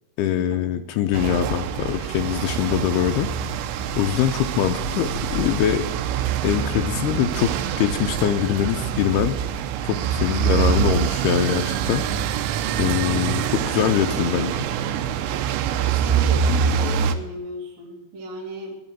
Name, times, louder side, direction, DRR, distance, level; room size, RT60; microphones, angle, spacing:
voice 1, 0.2-3.3 4.0-5.9 6.4-9.4 9.8-12.0 12.8-14.6, left 10 dB, 85° left, 7 dB, 2.4 m, -23 dB
sound 1, 1.1-17.2, right 8 dB, 80° right, 2.9 m, -25 dB
voice 2, 15.4-18.8, right 2 dB, 45° right, -2 dB, 3.1 m, -35 dB
11.0 x 10.5 x 7.4 m, 0.94 s
omnidirectional pair, 5.1 m